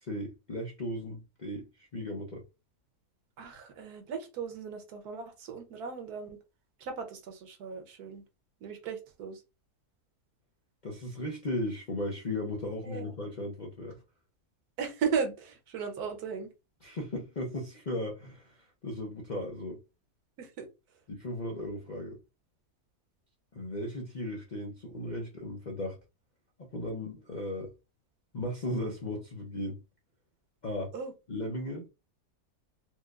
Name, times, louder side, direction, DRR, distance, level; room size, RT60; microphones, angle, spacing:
voice 1, 0.0-2.4 10.8-14.0 16.8-19.8 21.1-22.2 23.5-26.0 26.6-27.7 28.3-29.8 30.6-30.9 31.3-31.9, left 1 dB, 45° left, 0.5 m, -36 dB
voice 2, 3.4-6.4 6.8-8.2 8.6-9.4 12.8-13.1 14.8-16.5 20.4-20.7 30.9-31.1, right 6 dB, 75° right, 1.3 m, -36 dB
4.5 x 2.3 x 2.3 m
omnidirectional pair, 1.7 m